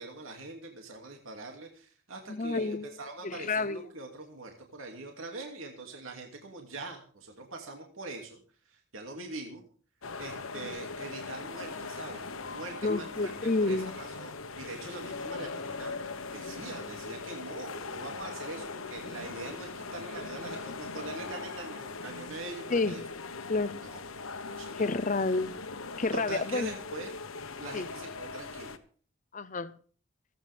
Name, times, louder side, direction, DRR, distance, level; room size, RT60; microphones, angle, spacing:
voice 1, 0.0-8.4 8.6-9.6 10.2-13.3 13.6-23.0 23.8-24.0 24.4-24.9 26.1-27.2 27.6-28.8, right 3 dB, 80° right, 2.6 m, -43 dB
voice 2, 2.3-2.9 3.2-3.8 12.8-13.9 22.7-23.0 23.5-23.8 24.8-25.5 26.0-26.7 27.7-27.9 29.3-29.7, left 3 dB, 40° left, 0.7 m, -29 dB
sound 1, 10.0-28.8, left 4 dB, 85° left, 1.3 m, -40 dB
27.5 x 9.2 x 3.6 m
head